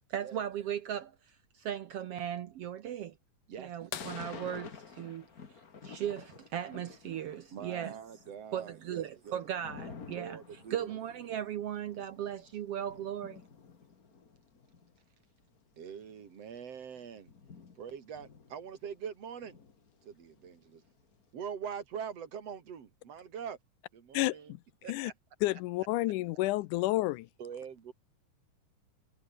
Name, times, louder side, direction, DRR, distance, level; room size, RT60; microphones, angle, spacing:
voice 1, 0.1-1.1 1.5-3.1 3.6-5.3 5.8-8.0 8.5-13.4, right 10 dB, 75° right, 1.4 m, -37 dB
sound 1, 3.9-6.4 8.3-8.4 10.6-10.7 12.4-12.7 13.5-13.6, left 10 dB, 55° left, 1.8 m, -46 dB
Thunder / Rain, 4.0-7.6 7.9-15.0 15.6-15.7 15.9-19.0 19.4-21.1, left 5 dB, 35° left, 1.8 m, -51 dB
voice 2, 7.5-9.4 10.2-11.0 15.8-17.3 17.8-19.6 20.0-20.8 21.3-23.6 23.9-24.5 24.8-25.1 27.4-27.9, right 7 dB, 50° right, 3.7 m, -43 dB
voice 3, 24.1-24.6 24.9-25.1 25.4-27.3, left 18 dB, 80° left, 2.1 m, -30 dB
omnidirectional pair, 3.8 m